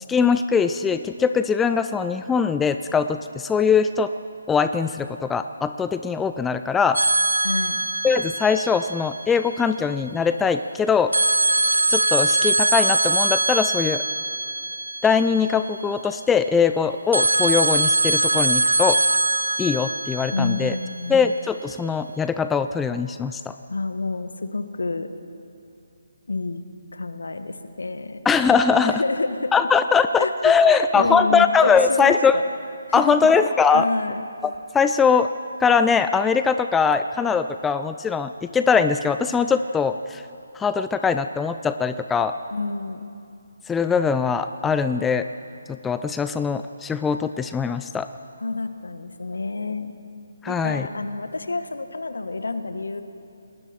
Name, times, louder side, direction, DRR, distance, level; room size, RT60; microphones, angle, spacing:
voice 1, 0.1-4.1 4.5-7.0 8.0-11.1 11.9-14.0 15.0-19.0 19.6-20.7 21.1-23.5 28.3-29.0 29.5-32.4 32.9-33.9 34.7-35.3 35.6-40.2 40.6-42.4 43.7-45.3 45.8-48.1 50.4-50.9, left 5 dB, 10° left, 10 dB, 0.4 m, -21 dB
sound 1, 6.9-9.9 11.1-16.1 17.1-21.3, right 2 dB, 80° right, 0.7 m, -22 dB
voice 2, 7.4-7.8 20.3-21.3 23.7-25.1 26.3-26.6 26.9-28.2 28.8-29.5 30.2-32.4 32.9-33.2 33.7-34.2 42.5-43.0 48.4-49.9 50.5-53.0, left 3 dB, 70° left, 9 dB, 1.5 m, -28 dB
29.5 x 20.0 x 4.5 m, 2.5 s
figure-of-eight pair, 145°, 0 cm